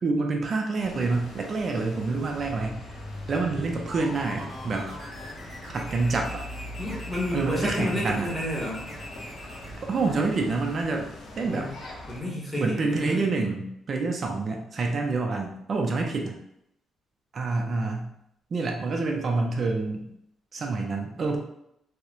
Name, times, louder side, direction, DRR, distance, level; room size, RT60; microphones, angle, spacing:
voice 1, 0.0-3.0 3.3-4.9 5.7-6.4 7.3-8.3 9.8-11.1 11.4-11.7 12.6-16.4 17.3-18.1 18.5-20.1 20.5-21.4, right 3 dB, 45° right, 2 dB, 0.4 m, -27 dB
sound 1, 0.8-12.2, left 1 dB, 65° left, 0.5 m, -41 dB
sound 2, 3.9-9.8, left 1 dB, 10° right, 1.2 m, -42 dB
voice 2, 6.8-8.9 11.4-11.8 12.1-13.3, left 1 dB, 15° left, -5 dB, 0.9 m, -31 dB
2.7 x 2.0 x 2.3 m, 0.77 s
cardioid pair, 90°, 0 cm